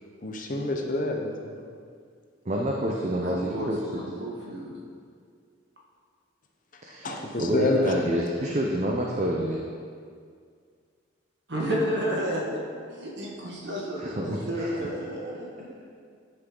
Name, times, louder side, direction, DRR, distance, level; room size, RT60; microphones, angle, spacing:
voice 1, 0.2-1.5 7.0-7.9, left 2 dB, 40° left, 1 dB, 0.7 m, -27 dB
voice 2, 2.5-4.0 6.8-9.6 14.0-14.7, right 1 dB, 35° right, -1 dB, 0.6 m, -28 dB
voice 3, 3.1-4.8 11.5-12.6 12.9-15.7, equal, 55° right, -3 dB, 1.5 m, -31 dB
10.0 x 5.9 x 3.8 m, 2.1 s
head